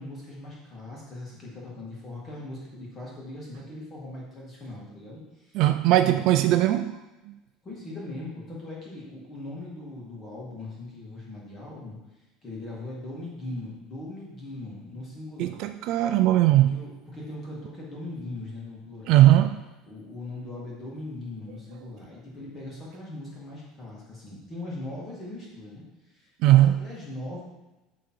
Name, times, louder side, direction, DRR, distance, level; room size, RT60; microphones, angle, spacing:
voice 1, 0.0-5.6 6.0-6.6 7.6-12.0 12.4-15.6 16.7-19.4 19.8-27.4, left 2 dB, 20° left, 2.2 m, -40 dB
voice 2, 5.5-7.0 7.3-7.4 15.4-16.8 19.1-19.6 26.4-26.8, right 14 dB, 45° right, 0.3 m, -19 dB
11.0 x 3.8 x 4.6 m
cardioid pair, 175°, 0 cm